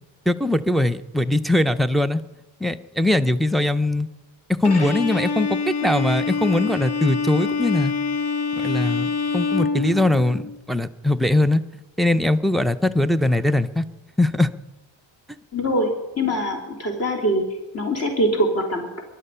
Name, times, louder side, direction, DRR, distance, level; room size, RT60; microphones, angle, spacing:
voice 1, 0.3-2.2 2.6-4.1 4.6-7.9 8.6-11.6 12.0-13.8 14.2-14.5, left 1 dB, ahead, 7 dB, 0.4 m, -21 dB
Bowed string instrument, 4.6-10.6, left 4 dB, 60° left, 1.9 m, -25 dB
voice 2, 15.5-17.4 17.7-18.9, equal, 35° left, 1 dB, 3.2 m, -23 dB
23.0 x 11.0 x 5.6 m, 1.1 s
cardioid pair, 125°, 45 cm